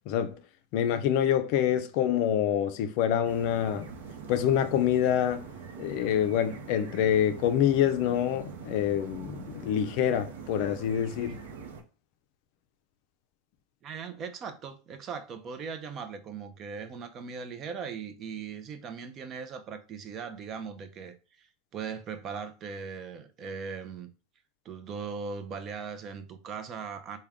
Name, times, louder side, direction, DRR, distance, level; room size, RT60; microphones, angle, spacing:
voice 1, 0.1-0.4 0.7-3.9 4.3-5.5 5.8-11.4, left 10 dB, 60° left, 0.4 m, -26 dB
sound 1, 3.2-11.8, right 5 dB, 85° right, 0.6 m, -44 dB
voice 2, 13.8-24.1 24.6-27.2, right 6 dB, 35° right, 0.5 m, -39 dB
3.4 x 2.2 x 3.5 m
supercardioid pair, 125°, 0 cm